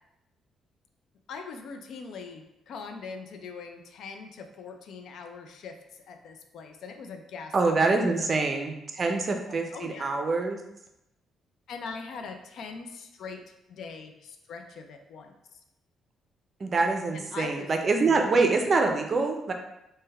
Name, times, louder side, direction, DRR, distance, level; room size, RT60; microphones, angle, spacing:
voice 1, 1.3-7.5 8.2-8.6 9.0-9.1 9.5-10.1 11.7-15.6 17.1-18.4, left 5 dB, 70° left, 5 dB, 0.4 m, -42 dB
voice 2, 7.5-10.6 16.6-19.5, right 3 dB, 40° right, 4 dB, 0.5 m, -25 dB
3.3 x 2.2 x 3.3 m, 0.87 s
cardioid pair, 90°, 0 cm